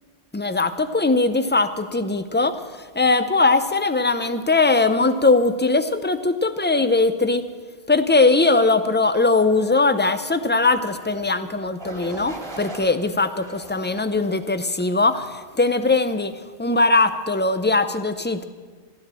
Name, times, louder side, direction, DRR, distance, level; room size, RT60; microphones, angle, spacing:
voice 1, 0.3-2.5 3.0-7.4 7.9-16.3 16.6-18.4, left 3 dB, 15° left, 11 dB, 0.5 m, -20 dB
sound 1, 10.9-11.2 11.8-12.9 13.4-14.4 15.0-15.4, right 1 dB, 20° right, 2.2 m, -39 dB
13.5 x 12.5 x 7.5 m, 1.5 s
omnidirectional pair, 1.2 m